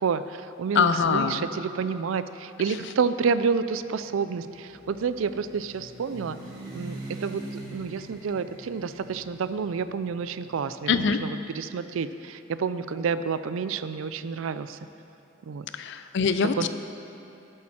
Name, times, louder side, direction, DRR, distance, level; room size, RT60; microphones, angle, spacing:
voice 1, 0.0-6.4 6.7-7.4 7.7-14.8 15.5-15.7 16.5-16.7, right 5 dB, 75° right, 13 dB, 0.4 m, -29 dB
voice 2, 0.8-1.5 10.9-11.2 15.7-16.7, left 5 dB, 60° left, 10 dB, 0.5 m, -23 dB
sound 1, 3.7-11.7, right 2 dB, 55° right, 2.2 m, -44 dB
12.0 x 8.4 x 4.3 m, 2.8 s
head